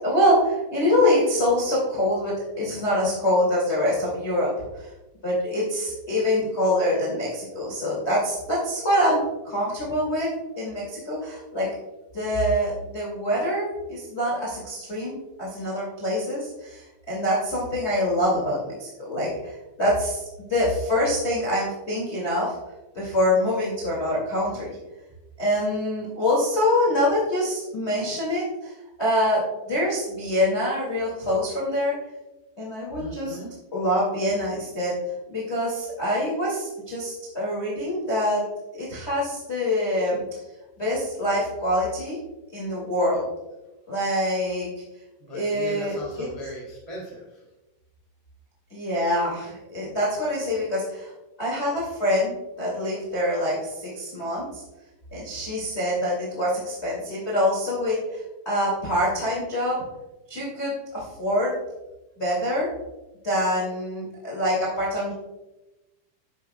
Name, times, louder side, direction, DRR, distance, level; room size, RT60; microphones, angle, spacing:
voice 1, 0.0-4.9 5.2-11.7 12.1-22.5 22.9-24.8 25.4-28.7 29.0-31.9 32.6-33.4 33.7-34.9 35.3-38.5 38.7-40.2 40.8-42.2 42.5-43.2 43.9-44.7 45.3-46.3 48.7-51.1 51.4-54.6 55.1-59.8 60.3-61.6 62.2-62.7 63.2-65.1, left 1 dB, 65° left, -5 dB, 0.6 m, -25 dB
voice 2, 33.0-33.5 45.2-47.4, right 1 dB, 30° right, -4 dB, 0.6 m, -38 dB
9.8 x 9.7 x 2.3 m, 1.0 s
omnidirectional pair, 5.8 m